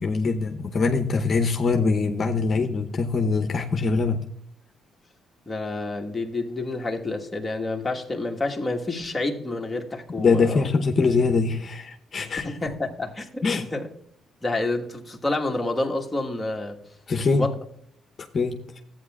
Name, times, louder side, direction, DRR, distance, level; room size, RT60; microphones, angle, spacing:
voice 1, 0.0-4.3 10.2-12.5 13.4-13.7 17.1-17.5 18.3-18.6, left 4 dB, 45° left, 0.8 m, -23 dB
voice 2, 5.5-10.7 12.2-13.4 13.7-13.9 14.4-16.8 17.2-17.5, left 2 dB, 15° left, 1.4 m, -29 dB
14.0 x 8.7 x 2.4 m
cardioid pair, 90°, 0 cm